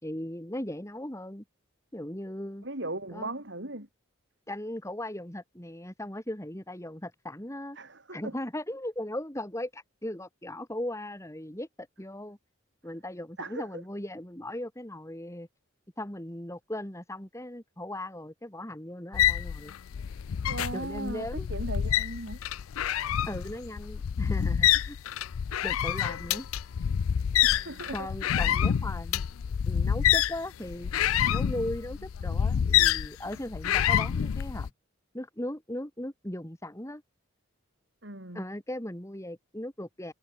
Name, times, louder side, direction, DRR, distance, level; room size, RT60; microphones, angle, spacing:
voice 1, 0.0-1.4 1.9-2.6 3.1-3.3 4.5-7.8 8.1-12.4 12.8-15.5 16.0-19.7 20.7-21.5 23.3-25.0 25.6-26.5 27.9-29.2 29.7-30.9 31.3-34.7 35.1-37.0 38.3-40.1, left 1 dB, 15° left, 2.5 m, -38 dB
voice 2, 2.6-3.9 7.8-8.3 13.4-13.8 20.5-22.4 27.4-28.1 38.0-38.4, right 2 dB, 55° right, 5.4 m, -38 dB
sound 1, 19.1-34.7, left 9 dB, 85° left, 0.4 m, -27 dB
head